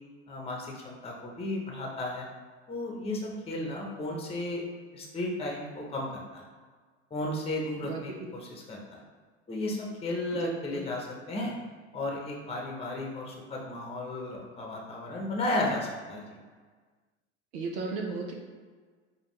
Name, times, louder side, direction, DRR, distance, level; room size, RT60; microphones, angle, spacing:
voice 1, 0.3-2.3 2.7-4.6 4.9-6.4 7.1-9.0 9.5-11.5 11.9-16.4, left 1 dB, 15° left, -1 dB, 0.9 m, -34 dB
voice 2, 7.8-8.3 10.4-10.8 17.5-18.3, right 4 dB, 65° right, 0 dB, 0.7 m, -35 dB
5.2 x 2.3 x 3.2 m, 1.5 s
hypercardioid pair, 80°, 35 cm